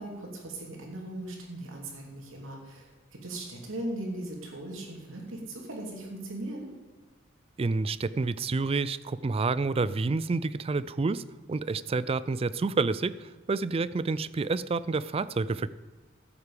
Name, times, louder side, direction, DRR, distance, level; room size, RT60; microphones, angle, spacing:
voice 1, 0.0-6.7, right 1 dB, 80° right, 0 dB, 2.9 m, -38 dB
voice 2, 7.6-15.7, right 3 dB, 30° right, 16 dB, 0.4 m, -29 dB
14.0 x 8.3 x 5.0 m, 1.3 s
head